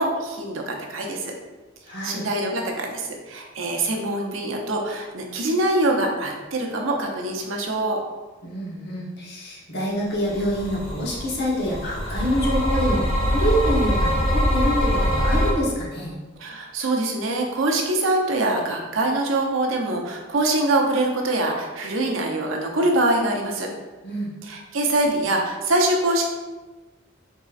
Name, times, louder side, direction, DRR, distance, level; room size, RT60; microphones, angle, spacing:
voice 1, 0.0-1.3 2.0-8.0 16.4-23.7 24.5-26.2, right 2 dB, 85° right, 1 dB, 0.7 m, -24 dB
voice 2, 1.9-2.2 8.4-16.2 24.0-24.3, equal, 60° left, -4 dB, 1.1 m, -26 dB
sound 1, 10.3-15.5, equal, 30° left, 1.0 m, -23 dB
4.0 x 3.7 x 2.5 m, 1.2 s
head